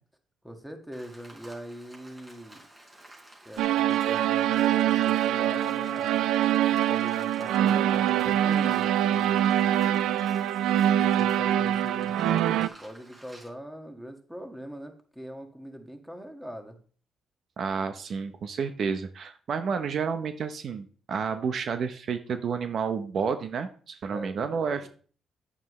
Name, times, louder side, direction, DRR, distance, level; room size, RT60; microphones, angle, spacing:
voice 1, 0.4-2.7 3.5-6.2 6.7-10.1 10.9-16.8 24.1-24.9, equal, 5° right, 4 dB, 1.8 m, -42 dB
Rain, 0.9-13.5, right 1 dB, 25° right, 4.7 m, -52 dB
sound 1, 3.6-12.7, right 11 dB, 85° right, 0.5 m, -24 dB
voice 2, 17.6-24.9, right 6 dB, 60° right, 9 dB, 0.9 m, -30 dB
9.8 x 8.7 x 3.2 m, 0.42 s
cardioid pair, 90°, 0 cm